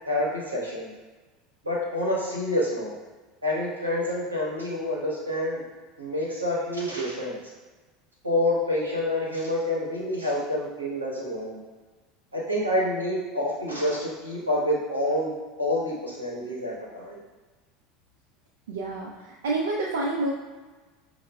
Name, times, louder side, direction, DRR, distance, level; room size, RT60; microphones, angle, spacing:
voice 1, 0.1-0.9 1.6-3.0 3.4-5.6 6.0-7.4 8.2-11.6 12.3-15.3 15.6-17.2, left 1 dB, 90° right, -5 dB, 0.8 m, -27 dB
voice 2, 18.7-20.3, right 2 dB, 70° right, -3 dB, 0.4 m, -28 dB
5.4 x 2.1 x 2.2 m, 1.3 s
figure-of-eight pair, 75°, 0 cm